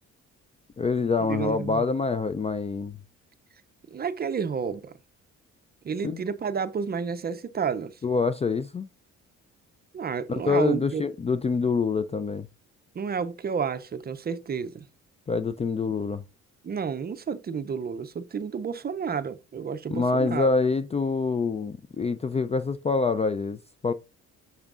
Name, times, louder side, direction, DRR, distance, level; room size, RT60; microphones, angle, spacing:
voice 1, 0.8-3.0 6.0-6.2 8.0-8.9 10.3-12.5 15.3-16.2 19.9-23.9, left 4 dB, 20° left, 0.3 m, -26 dB
voice 2, 1.3-1.8 3.9-4.9 5.8-7.9 9.9-11.0 13.0-14.8 16.6-20.5, right 6 dB, 30° right, 0.5 m, -30 dB
8.7 x 6.1 x 2.4 m
cardioid pair, 90°, 30 cm